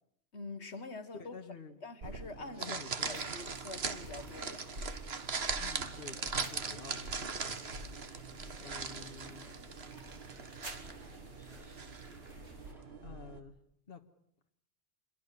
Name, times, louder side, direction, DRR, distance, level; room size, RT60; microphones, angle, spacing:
voice 1, 0.3-1.3 1.8-2.8 3.0-4.7, left 3 dB, 75° left, 2.0 m, -45 dB
voice 2, 1.2-1.8 2.6-3.3 5.6-9.5 13.0-13.6 13.9-14.0, left 5 dB, 55° left, 1.8 m, -50 dB
sound 1, 2.0-13.4, right 5 dB, 65° right, 1.7 m, -40 dB
sound 2, 3.0-9.6 9.9-12.8, equal, ahead, 7.1 m, -62 dB
sound 3, 3.0-12.7, right 1 dB, 85° right, 3.5 m, -50 dB
27.5 x 22.5 x 6.8 m
omnidirectional pair, 1.1 m